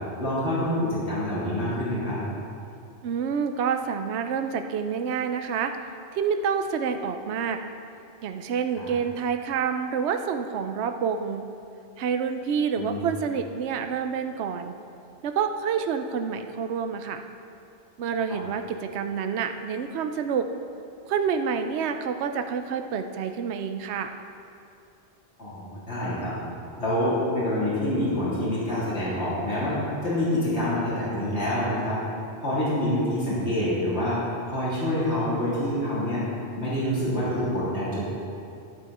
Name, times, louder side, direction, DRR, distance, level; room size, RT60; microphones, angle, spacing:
voice 1, 0.2-2.2 8.7-8.9 12.8-13.1 25.4-26.3 26.8-29.8 30.0-32.0 32.4-34.2 34.5-36.2 36.5-38.0, left 1 dB, 75° left, -10 dB, 3.7 m, -26 dB
voice 2, 3.0-5.8 6.1-7.6 8.2-11.5 12.0-14.7 15.2-17.2 18.0-20.5 21.1-24.1, right 6 dB, 75° right, 7 dB, 0.9 m, -28 dB
12.0 x 10.5 x 4.2 m, 2.6 s
omnidirectional pair, 1.1 m